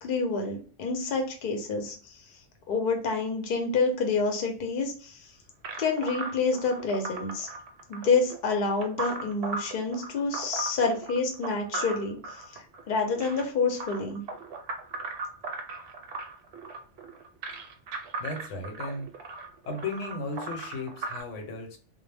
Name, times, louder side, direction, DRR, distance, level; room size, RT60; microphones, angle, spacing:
voice 1, 0.0-2.2 2.7-5.3 5.8-7.5 7.9-14.2, left 4 dB, 55° left, 3 dB, 0.7 m, -28 dB
sound 1, 5.6-21.2, right 3 dB, 65° right, 0.8 m, -37 dB
voice 2, 18.2-19.1 19.6-21.8, left 2 dB, 90° left, 3 dB, 1.0 m, -35 dB
2.1 x 2.0 x 3.2 m, 0.40 s
omnidirectional pair, 1.2 m